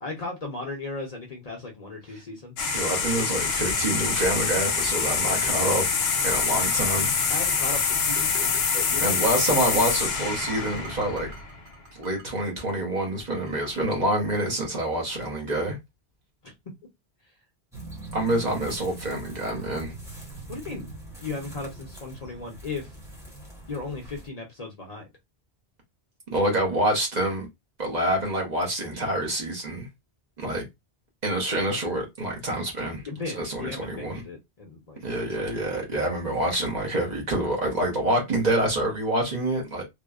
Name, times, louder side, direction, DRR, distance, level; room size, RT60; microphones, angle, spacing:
voice 1, 0.0-2.5 7.3-9.2 9.5-9.8 16.4-16.5 20.5-20.9 21.2-22.9 23.7-25.1 33.1-35.0 35.4-35.5, left 3 dB, 45° left, 0.6 m, -36 dB
sound 1, 2.6-11.7, left 5 dB, 85° left, 0.8 m, -25 dB
voice 2, 2.7-5.9 6.2-7.1 9.0-11.3 11.9-15.8 18.1-19.9 26.3-27.5 27.8-29.9 30.4-30.7 31.2-33.0 33.3-34.2 35.0-39.8, right 1 dB, 45° right, 0.9 m, -27 dB
sound 2, 3.7-3.8 4.2-4.3 4.8-5.5 6.2-6.3 6.6-6.9 7.2-7.7 8.2-9.2 9.5-12.4 12.7-15.2, right 2 dB, 90° right, 1.0 m, -45 dB
sound 3, 17.7-24.3, right 2 dB, 5° right, 0.9 m, -42 dB
2.9 x 2.0 x 2.3 m
omnidirectional pair, 1.0 m